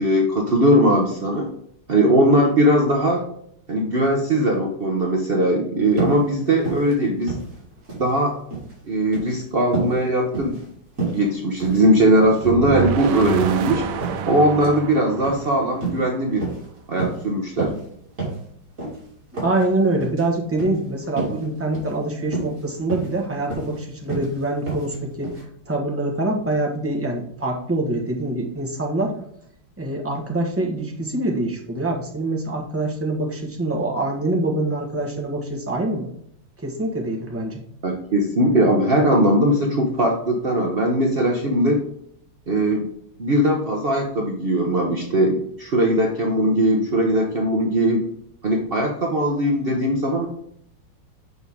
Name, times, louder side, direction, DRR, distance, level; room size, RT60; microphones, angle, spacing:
voice 1, 0.0-1.5 1.9-3.2 3.7-7.4 8.0-8.4 8.9-10.6 11.1-13.8 14.3-16.4 16.9-17.7 37.8-41.8 42.5-42.9 43.2-48.0 48.4-50.3, right 1 dB, 65° right, 0 dB, 0.5 m, -19 dB
sound 1, 5.9-6.2 6.6-6.9 7.2-8.1 8.4-8.7 9.1-9.3 9.7-10.0 10.3-10.7 11.0-11.2 11.6-11.9 12.2-12.4 12.8-13.6 14.0-14.2 14.6-14.8 15.2-15.4 15.8-16.0 16.4-16.7 17.0-17.2 17.6-17.9 18.2-18.4 18.8-19.0 19.3-19.7 20.0-20.2 20.6-20.8 21.2-21.4 21.7-21.9 22.3-22.6 22.9-23.2 23.5-23.8 24.1-24.3 24.7-25.0 25.2-25.4, right 3 dB, 40° right, 2.9 m, -29 dB
sound 2, 12.4-16.5, right 8 dB, 85° right, 1.5 m, -29 dB
voice 2, 19.4-25.3 25.7-29.1 29.8-36.1 36.6-37.6, right 2 dB, 10° right, 0 dB, 0.9 m, -25 dB
6.6 x 5.4 x 3.5 m, 0.69 s
omnidirectional pair, 2.3 m